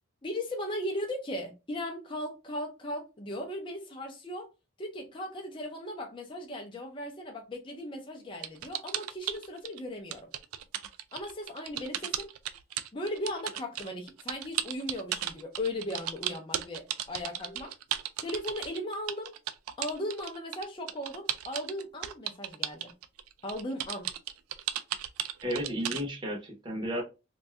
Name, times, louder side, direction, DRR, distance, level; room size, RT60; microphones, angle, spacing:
voice 1, 0.2-4.5 4.8-10.3 11.1-12.3 12.9-17.7 18.2-19.3 19.8-22.9 23.4-24.1, left 1 dB, 25° left, 0.5 m, -37 dB
sound 1, 8.4-9.8 10.1-26.0, right 11 dB, 90° right, 0.3 m, -35 dB
voice 2, 25.4-27.0, equal, 20° right, 0.7 m, -33 dB
2.6 x 2.3 x 3.3 m
head